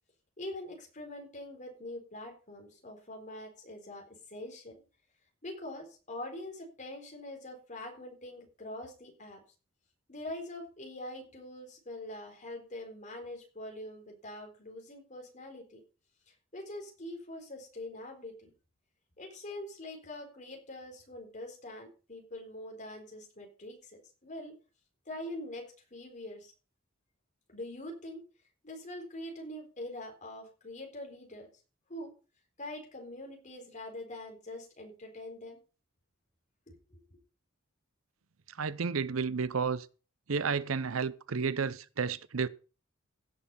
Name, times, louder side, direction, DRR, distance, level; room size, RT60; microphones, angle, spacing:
voice 1, 0.4-4.8 5.4-9.4 10.1-15.8 16.5-18.5 19.2-24.5 25.1-26.5 27.5-28.2 28.6-31.5 31.9-32.1 32.6-35.6 36.7-37.2, left 1 dB, 35° left, 4.1 m, -44 dB
voice 2, 38.6-39.9 40.3-42.5, right 5 dB, 85° right, 0.7 m, -31 dB
16.0 x 6.6 x 5.5 m
head